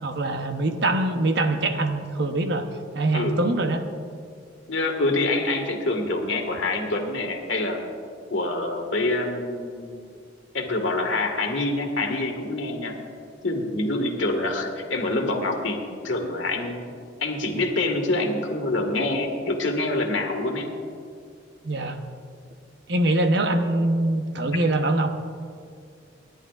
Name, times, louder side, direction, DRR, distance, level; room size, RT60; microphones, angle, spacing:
voice 1, 0.0-2.7 2.9-3.8 21.6-22.1 22.9-25.1, right 2 dB, 60° right, 6 dB, 0.9 m, -23 dB
voice 2, 4.7-7.8 8.3-10.1 10.5-12.9 13.4-16.9 17.2-20.7, left 2 dB, 70° left, 3 dB, 1.8 m, -26 dB
27.5 x 10.5 x 2.5 m, 2.2 s
head